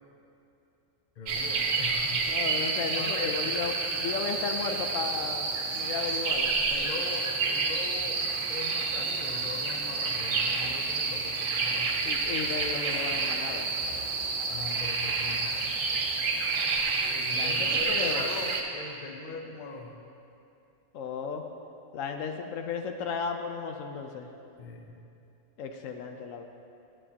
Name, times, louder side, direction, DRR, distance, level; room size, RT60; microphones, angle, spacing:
voice 1, 1.2-2.2 2.9-3.4 6.7-11.9 14.5-15.5 17.1-19.9 24.6-25.0, left 4 dB, 45° left, 2 dB, 0.7 m, -40 dB
sound 1, 1.3-18.6, right 4 dB, 85° right, 1.1 m, -29 dB
voice 2, 2.3-5.5 5.7-6.5 12.0-13.7 17.3-18.2 20.9-21.4 21.9-24.3 25.6-26.4, left 6 dB, 80° left, 5 dB, 1.0 m, -34 dB
11.0 x 7.4 x 2.8 m, 2.7 s
omnidirectional pair, 1.3 m